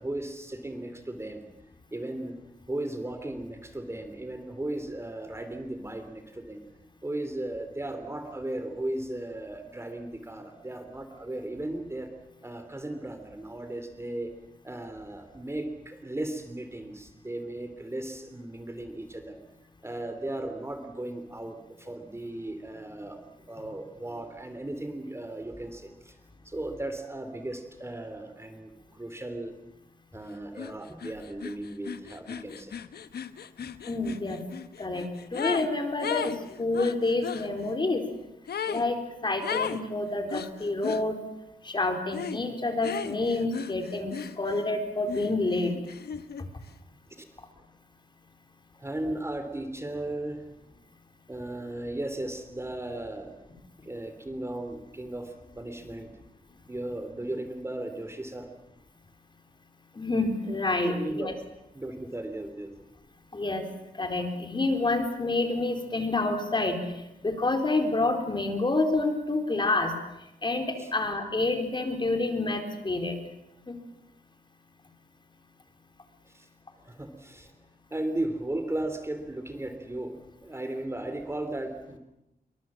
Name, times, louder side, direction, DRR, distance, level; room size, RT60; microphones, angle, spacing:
voice 1, 0.0-1.4 1.9-2.4 2.7-6.6 7.0-12.1 12.4-14.3 14.6-19.4 19.8-26.2 26.4-29.5 30.1-32.8 33.6-33.7 47.1-47.3 48.8-50.4 51.3-53.3 53.8-56.1 56.7-58.5 60.8-61.3 61.7-62.7 70.7-70.9 76.3-76.5 76.8-77.5 77.9-82.0, right 1 dB, 15° right, 7 dB, 3.0 m, -36 dB
sound 1, 30.6-30.7 31.0-35.7 36.0-37.5 38.5-38.9 39.4-39.8 40.3-41.0 42.1-42.4 42.8-44.7 45.1-46.4, left 7 dB, 85° left, 1.2 m, -36 dB
voice 2, 33.9-34.4 34.8-38.0 38.7-39.0 39.2-41.1 41.6-45.7 60.0-61.3 63.3-63.6 64.0-66.8 67.2-69.9 70.4-73.2 73.7-73.8, left 2 dB, 30° left, 5 dB, 4.3 m, -28 dB
27.5 x 23.5 x 7.5 m, 0.91 s
wide cardioid pair, 110°, 16 cm